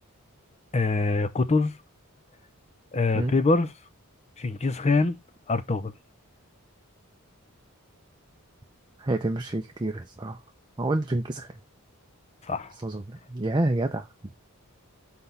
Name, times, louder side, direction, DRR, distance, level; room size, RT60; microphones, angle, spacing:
voice 1, 0.7-1.8 2.9-3.7 4.4-5.2 5.5-5.9 12.4-12.7, left 3 dB, 30° left, 0.6 m, -24 dB
voice 2, 9.0-10.4 10.8-11.6 12.8-14.3, right 2 dB, 20° right, 0.6 m, -28 dB
5.9 x 4.5 x 5.5 m
head